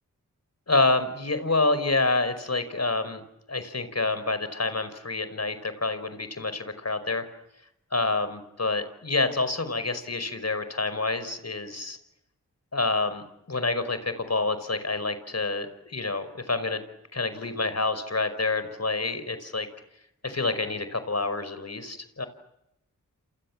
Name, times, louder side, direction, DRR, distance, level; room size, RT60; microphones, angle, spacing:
voice 1, 0.7-3.2 3.5-7.3 7.9-12.0 12.7-16.8 17.1-19.7 20.2-22.3, left 3 dB, 50° left, 12 dB, 5.3 m, -28 dB
29.0 x 27.5 x 7.5 m, 0.83 s
cardioid pair, 40°, 34 cm